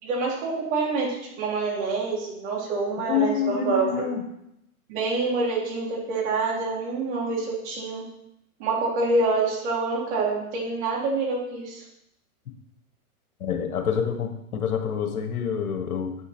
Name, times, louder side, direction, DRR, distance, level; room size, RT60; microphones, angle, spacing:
voice 1, 0.0-4.1 4.9-8.1 8.6-11.8, right 3 dB, 45° right, -3 dB, 3.7 m, -26 dB
voice 2, 3.1-4.2 13.4-16.2, left 7 dB, 70° left, 6 dB, 1.4 m, -27 dB
8.8 x 7.0 x 4.4 m, 0.80 s
hypercardioid pair, 120°, 45 cm